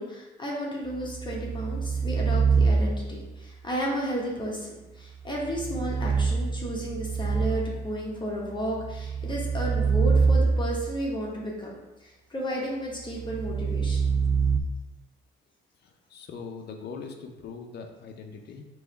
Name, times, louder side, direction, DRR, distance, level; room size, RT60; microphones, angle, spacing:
voice 1, 0.0-14.1, equal, 25° left, -3 dB, 1.1 m, -33 dB
sound 1, 0.9-3.2 5.3-7.9 8.6-11.1 13.1-14.6, right 5 dB, 15° right, 0.4 m, -25 dB
voice 2, 15.8-18.7, left 5 dB, 55° left, 3 dB, 0.6 m, -41 dB
3.5 x 3.1 x 4.4 m, 1.1 s
cardioid pair, 90°, 20 cm